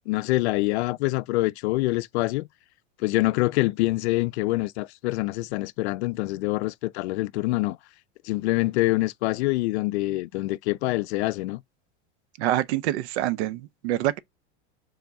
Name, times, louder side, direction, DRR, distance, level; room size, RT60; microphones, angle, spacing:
voice 1, 0.1-2.5 3.0-7.8 8.2-11.6, left 20 dB, 75° left, 0.5 m, -25 dB
voice 2, 12.4-14.2, right 13 dB, 75° right, 0.6 m, -26 dB
3.5 x 3.5 x 4.0 m
supercardioid pair, 150°, 34 cm